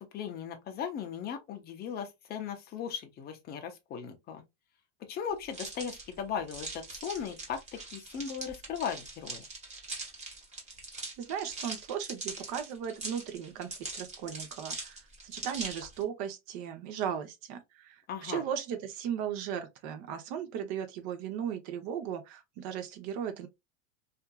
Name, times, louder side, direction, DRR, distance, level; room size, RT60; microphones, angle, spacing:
voice 1, 0.0-4.4 5.0-9.4 18.1-18.4, left 7 dB, 25° left, 0.5 m, -38 dB
sound 1, 5.5-16.0, right 3 dB, 15° right, 1.1 m, -42 dB
voice 2, 11.2-23.5, right 8 dB, 50° right, 0.8 m, -37 dB
2.7 x 2.4 x 2.3 m
supercardioid pair, 135°, 39 cm